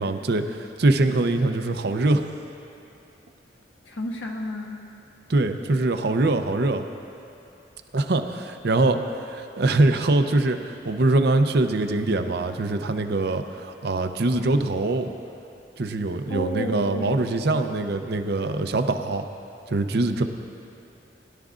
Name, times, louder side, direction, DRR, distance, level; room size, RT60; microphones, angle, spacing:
voice 1, 0.0-2.3 5.3-6.8 7.9-15.1 15.8-19.2 19.7-20.2, right 2 dB, 60° right, 7 dB, 0.6 m, -23 dB
voice 2, 3.8-4.8 16.3-17.2, left 1 dB, 80° left, 0 dB, 1.4 m, -31 dB
21.0 x 11.5 x 2.5 m, 2.7 s
head